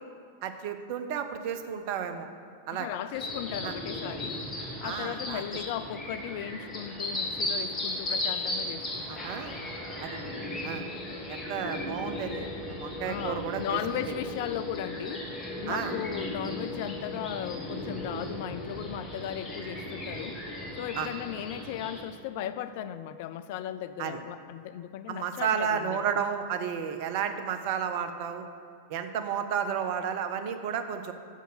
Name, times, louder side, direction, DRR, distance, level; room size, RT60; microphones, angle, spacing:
voice 1, 0.4-2.3 2.7-2.9 3.6-3.7 4.8-5.4 9.1-9.6 10.0-10.2 10.6-10.9 11.3-12.5 12.8-13.8 15.7-15.9 21.0-21.1 24.0-24.2 25.1-28.5 28.9-31.1, right 8 dB, 50° right, 8 dB, 0.6 m, -32 dB
voice 2, 2.7-4.4 4.8-9.3 13.0-15.3 15.6-20.4 20.8-26.0, left 11 dB, 50° left, 12 dB, 0.3 m, -36 dB
sound 1, 3.1-22.0, left 1 dB, 20° left, 1.9 m, -36 dB
sound 2, 7.3-23.9, left 3 dB, 5° right, 1.4 m, -48 dB
6.5 x 6.4 x 6.6 m, 2.4 s
figure-of-eight pair, 90°, 0 cm